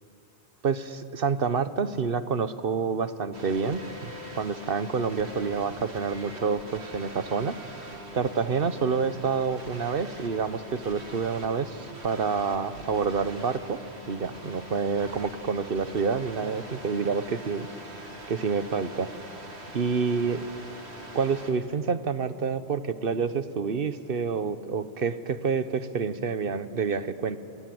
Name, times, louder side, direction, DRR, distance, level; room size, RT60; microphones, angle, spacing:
voice 1, 0.6-7.5 8.1-13.8 14.1-17.7 18.3-19.1 19.7-20.5 21.1-27.4, right 5 dB, 60° right, 12 dB, 1.2 m, -28 dB
sound 1, 3.3-21.5, right 1 dB, 75° right, 3.1 m, -43 dB
28.5 x 26.0 x 7.8 m, 2.6 s
omnidirectional pair, 1.1 m